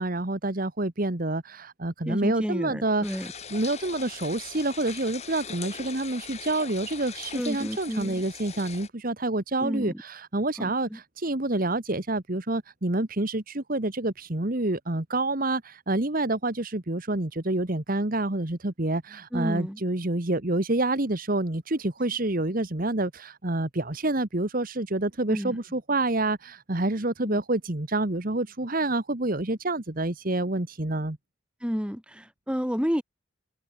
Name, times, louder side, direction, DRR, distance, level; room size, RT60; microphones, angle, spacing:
voice 1, 0.0-31.2, right 2 dB, 40° right, 1.5 m, -28 dB
voice 2, 2.1-3.3 7.3-8.2 9.6-10.0 10.6-11.0 19.3-19.8 25.3-25.6 27.2-27.4 31.6-33.0, equal, 5° right, 2.5 m, -31 dB
sound 1, 3.0-8.9, left 7 dB, 30° left, 1.7 m, -41 dB
head